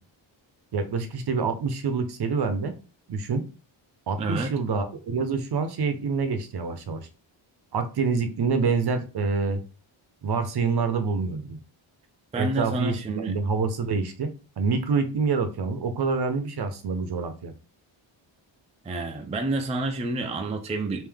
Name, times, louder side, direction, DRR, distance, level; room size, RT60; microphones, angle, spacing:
voice 1, 0.7-2.7 3.1-3.4 4.1-7.1 7.7-9.6 10.2-11.6 12.4-14.3 14.6-17.5, right 4 dB, 55° right, 0.7 m, -26 dB
voice 2, 4.2-4.5 12.3-13.3 18.9-21.1, right 2 dB, 15° right, 0.4 m, -29 dB
3.5 x 2.6 x 3.4 m
wide cardioid pair, 125°, 47 cm